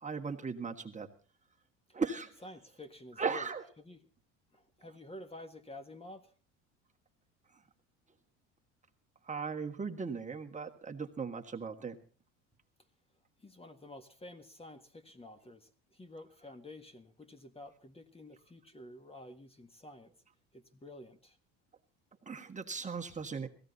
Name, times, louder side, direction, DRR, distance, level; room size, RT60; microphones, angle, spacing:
voice 1, 0.0-1.1 1.9-2.3 3.2-3.6 9.2-12.0 22.2-23.5, right 5 dB, 20° right, 3 dB, 1.6 m, -37 dB
voice 2, 2.4-4.1 4.5-6.3 13.4-20.1 20.5-21.4, left 1 dB, 15° left, 8 dB, 1.5 m, -51 dB
17.0 x 15.5 x 4.1 m, 0.38 s
supercardioid pair, 85°, 34 cm